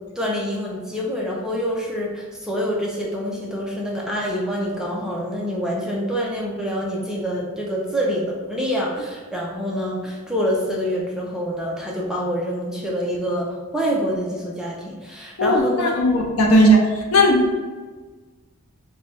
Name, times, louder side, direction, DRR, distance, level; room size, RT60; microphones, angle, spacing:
voice 1, 0.2-16.0, equal, 5° right, -4 dB, 0.4 m, -26 dB
voice 2, 15.4-16.8 17.1-17.5, equal, 70° left, 0 dB, 0.6 m, -16 dB
3.1 x 2.2 x 4.1 m, 1.4 s
head